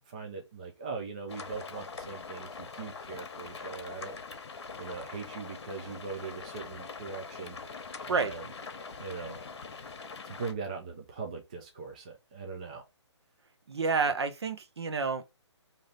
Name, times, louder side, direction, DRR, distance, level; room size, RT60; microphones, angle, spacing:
voice 1, 0.1-4.1 4.8-7.6 8.0-8.4 9.0-9.4 10.2-12.8, right 4 dB, 15° right, 0.4 m, -40 dB
sound 1, 1.3-10.5, left 5 dB, 60° left, 1.0 m, -43 dB
voice 2, 13.7-15.2, right 4 dB, 60° right, 0.8 m, -29 dB
3.3 x 2.8 x 3.8 m
hypercardioid pair, 170°, 15 cm